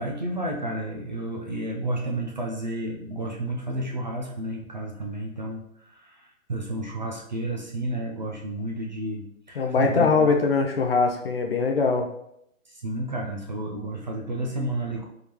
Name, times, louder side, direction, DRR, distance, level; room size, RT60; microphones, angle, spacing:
voice 1, 0.0-10.3 12.7-15.0, right 1 dB, 35° right, -1 dB, 0.4 m, -31 dB
voice 2, 9.6-12.1, left 4 dB, 45° left, 3 dB, 0.5 m, -22 dB
3.5 x 3.5 x 2.9 m, 0.75 s
hypercardioid pair, 155°, 42 cm